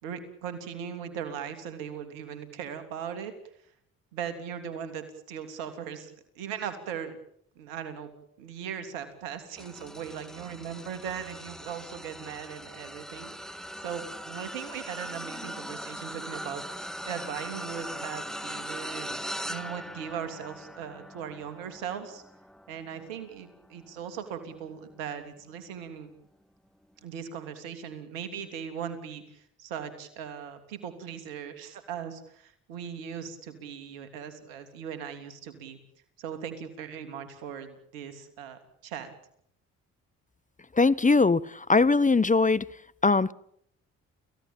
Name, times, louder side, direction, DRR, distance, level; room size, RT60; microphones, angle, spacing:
voice 1, 0.0-3.3 4.1-7.2 7.6-8.1 8.4-22.2 22.7-26.1 27.0-35.8 36.2-39.1, right 8 dB, 85° right, 3.3 m, -39 dB
sound 1, 9.6-25.1 25.6-25.9 27.1-27.2, equal, ahead, 2.0 m, -41 dB
voice 2, 40.7-42.7 43.0-43.3, left 3 dB, 20° left, 0.9 m, -21 dB
29.0 x 16.5 x 9.0 m
hypercardioid pair, 45°, 39 cm